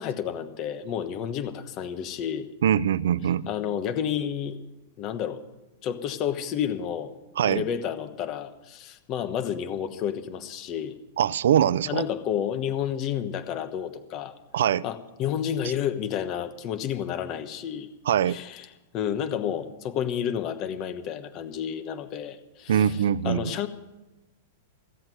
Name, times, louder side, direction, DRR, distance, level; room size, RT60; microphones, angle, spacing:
voice 1, 0.0-2.5 3.5-4.6 5.0-5.4 5.8-7.1 7.4-10.9 11.9-14.3 14.8-17.9 18.3-18.7 18.9-23.0 23.2-23.7, left 9 dB, 30° left, 9 dB, 1.1 m, -30 dB
voice 2, 2.6-3.5 7.4-7.6 11.2-12.0 14.5-14.8 18.1-18.4 22.7-23.5, right 9 dB, 80° right, 19 dB, 0.5 m, -23 dB
16.0 x 8.0 x 9.2 m, 0.99 s
supercardioid pair, 165°, 0 cm